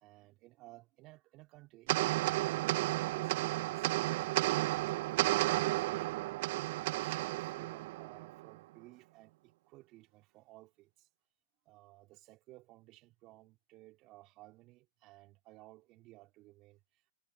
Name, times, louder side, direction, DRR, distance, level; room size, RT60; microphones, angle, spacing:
voice 1, 0.0-2.0 2.4-11.1 11.6-17.1, right 19 dB, 40° right, 2.6 m, -57 dB
sound 1, 1.9-8.5, right 19 dB, 55° right, 0.4 m, -32 dB
hypercardioid pair, 115°, 0 cm